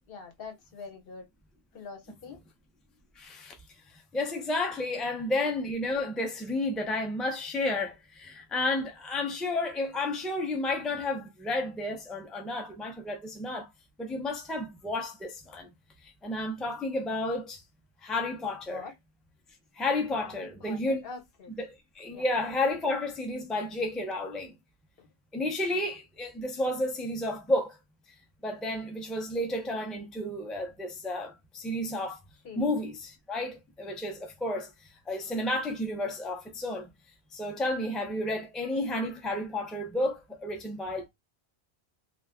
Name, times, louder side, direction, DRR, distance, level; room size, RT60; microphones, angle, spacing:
voice 1, 0.1-1.3 1.7-2.4 4.9-5.0 18.7-18.9 20.2-21.5 22.1-22.2 25.0-25.1 25.7-25.8 32.4-32.7 37.4-37.5, left 4 dB, 65° left, 1.0 m, -45 dB
voice 2, 3.2-3.5 4.1-13.7 14.0-15.7 16.2-17.6 18.0-18.8 19.8-21.0 21.6-24.5 25.3-27.8 28.4-32.2 32.6-34.7 35.1-36.9 37.3-41.1, left 2 dB, ahead, 0.5 m, -31 dB
2.6 x 2.3 x 3.5 m
omnidirectional pair, 1.1 m